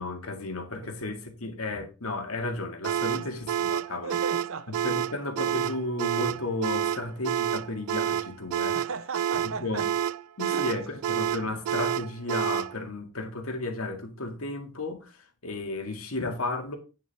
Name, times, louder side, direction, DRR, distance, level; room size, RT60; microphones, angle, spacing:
voice 1, 0.0-4.2 4.7-8.8 9.4-9.9 10.4-15.2 15.4-16.8, left 2 dB, 75° left, 2.1 m, -33 dB
sound 1, 2.8-12.8, right 9 dB, 90° right, 0.3 m, -28 dB
voice 2, 4.0-4.8 8.7-9.9 10.4-10.7, right 4 dB, 65° right, 0.8 m, -36 dB
9.2 x 7.2 x 3.5 m
head